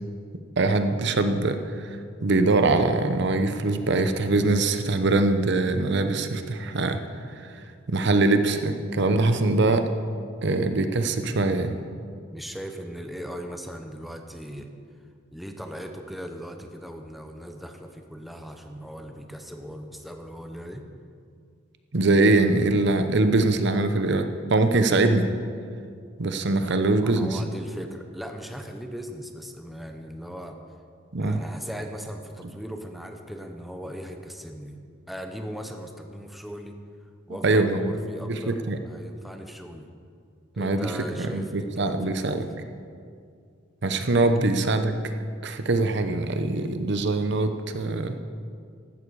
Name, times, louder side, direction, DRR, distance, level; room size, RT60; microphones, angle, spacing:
voice 1, 0.6-7.0 7.4-7.5 7.9-9.9 10.4-11.8 21.9-25.3 26.2-27.4 31.1-31.4 37.4-37.9 38.3-38.8 40.6-40.9 41.2-42.5 43.8-45.0 45.4-48.2, right 2 dB, 65° right, 8 dB, 0.8 m, -23 dB
voice 2, 12.3-14.7 15.3-20.9 27.0-30.6 31.2-34.8 35.1-36.8 37.3-39.9 40.6-42.4, equal, ahead, 4 dB, 0.9 m, -38 dB
15.5 x 12.5 x 4.8 m, 2.2 s
head